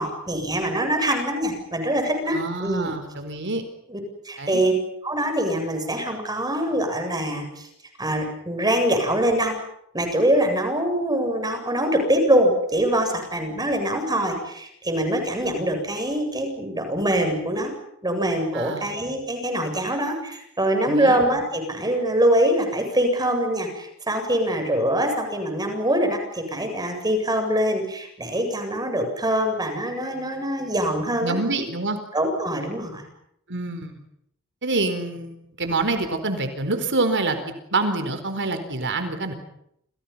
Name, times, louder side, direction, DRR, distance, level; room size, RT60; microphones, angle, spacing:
voice 1, 0.0-3.0 3.9-4.0 4.2-4.7 5.0-7.7 8.0-9.6 9.9-17.7 18.0-31.4 32.1-33.0, right 1 dB, 20° right, 5 dB, 7.8 m, -24 dB
voice 2, 2.3-3.6 4.4-4.6 18.5-18.9 20.8-21.1 31.2-32.0 33.5-33.9 34.6-37.4 37.7-39.3, right 3 dB, 55° right, 8 dB, 4.4 m, -26 dB
29.5 x 29.5 x 5.8 m, 0.73 s
head